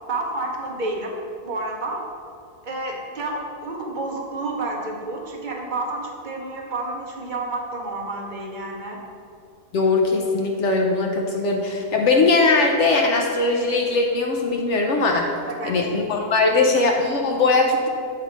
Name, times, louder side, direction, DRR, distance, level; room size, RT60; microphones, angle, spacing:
voice 1, 0.1-1.1 1.4-2.0 2.6-9.0 15.5-15.8, right 2 dB, 45° right, -1 dB, 0.7 m, -30 dB
voice 2, 9.7-15.3 15.6-17.9, left 3 dB, 65° left, 1 dB, 0.8 m, -20 dB
7.5 x 3.4 x 5.0 m, 2.3 s
omnidirectional pair, 1.6 m